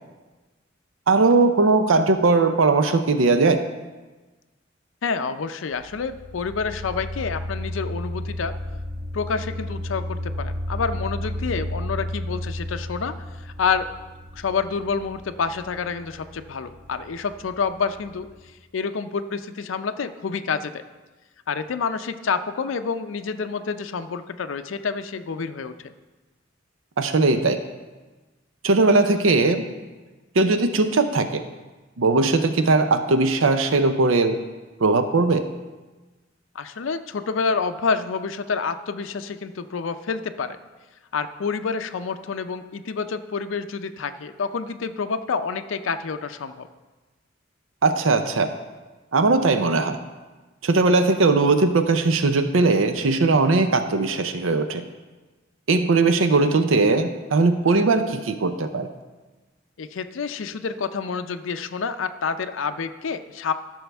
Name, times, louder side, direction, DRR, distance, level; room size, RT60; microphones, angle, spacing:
voice 1, 1.1-3.6 27.0-27.6 28.6-29.7 30.4-31.4 32.0-34.4 34.8-35.4 47.8-48.5 49.1-50.0 50.6-54.8 55.7-58.9, right 3 dB, 90° right, 8 dB, 0.6 m, -19 dB
voice 2, 5.0-8.5 9.1-13.1 13.4-13.9 14.4-18.3 18.7-20.8 21.5-25.9 36.5-40.6 41.1-46.7 59.8-63.5, left 5 dB, 75° left, 9 dB, 0.5 m, -28 dB
sound 1, 5.7-18.5, left 1 dB, 35° right, 1.3 m, -33 dB
14.0 x 6.2 x 3.4 m, 1.2 s
head